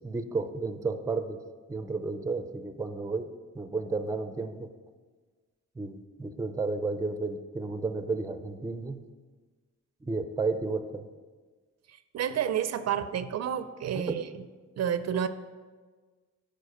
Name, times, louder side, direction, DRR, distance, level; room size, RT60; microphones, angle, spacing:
voice 1, 0.0-1.4 1.7-4.7 5.8-9.0 10.0-11.0 13.9-14.2, right 3 dB, 10° right, 9 dB, 0.5 m, -32 dB
voice 2, 11.9-14.3 14.8-15.3, right 9 dB, 60° right, 12 dB, 0.5 m, -30 dB
9.9 x 4.4 x 6.5 m, 1.4 s
cardioid pair, 115°, 29 cm